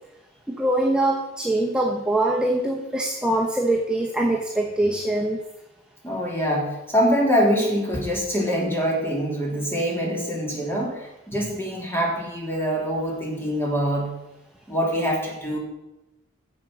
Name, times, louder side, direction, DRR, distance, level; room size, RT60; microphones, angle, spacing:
voice 1, 0.5-5.4, right 1 dB, 5° right, -1 dB, 0.9 m, -23 dB
voice 2, 6.0-14.1 14.7-15.6, equal, 10° left, -2 dB, 2.8 m, -24 dB
9.8 x 7.6 x 6.1 m, 0.94 s
head